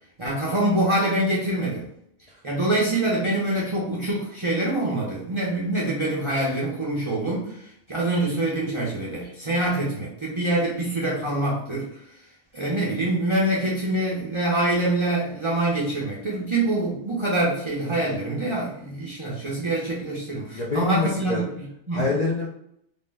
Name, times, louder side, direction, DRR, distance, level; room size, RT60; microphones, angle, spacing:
voice 1, 0.2-1.9 2.4-11.9 12.5-22.0, right 1 dB, 35° right, -5 dB, 0.5 m, -25 dB
voice 2, 20.5-21.5 21.9-22.5, left 3 dB, 50° left, -4 dB, 0.5 m, -25 dB
2.6 x 2.0 x 3.3 m, 0.73 s
omnidirectional pair, 1.2 m